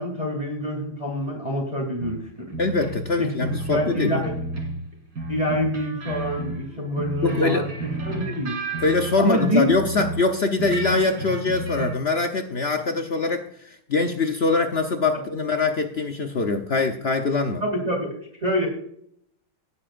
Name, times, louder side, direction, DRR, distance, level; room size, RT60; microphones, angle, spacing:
voice 1, 0.0-2.5 3.2-4.3 5.3-8.6 9.2-9.7 17.6-18.1 18.4-18.7, equal, 20° right, -1 dB, 2.6 m, -26 dB
sound 1, 2.0-4.9 5.2-10.3 10.6-11.9, right 2 dB, 50° right, 3.0 m, -32 dB
voice 2, 2.6-4.2 7.2-7.6 8.8-17.6, left 3 dB, 70° left, 5 dB, 0.5 m, -23 dB
18.0 x 8.8 x 2.5 m, 0.68 s
omnidirectional pair, 2.3 m